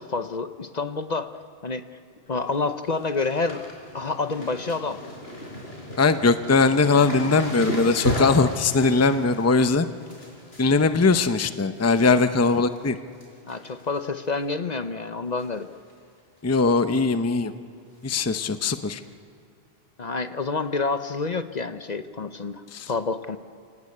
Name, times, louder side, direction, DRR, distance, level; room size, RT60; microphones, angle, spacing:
voice 1, 0.0-1.3 1.6-1.8 2.3-3.6 3.9-5.0 13.5-15.7 20.0-23.4, left 3 dB, 45° left, 10 dB, 0.8 m, -28 dB
sound 1, 2.3-2.6 2.8-12.1 12.4-12.8 13.1-14.0 14.3-14.4 15.4-15.6 15.9-16.0 16.4-16.5 18.1-18.2 18.9-19.0, left 1 dB, 80° left, 4.8 m, -35 dB
voice 2, 6.0-9.9 10.6-13.0 16.4-17.5 18.0-19.0 22.7-22.9, left 4 dB, 15° left, 10 dB, 0.6 m, -20 dB
29.5 x 18.5 x 8.6 m, 2.4 s
omnidirectional pair, 1.0 m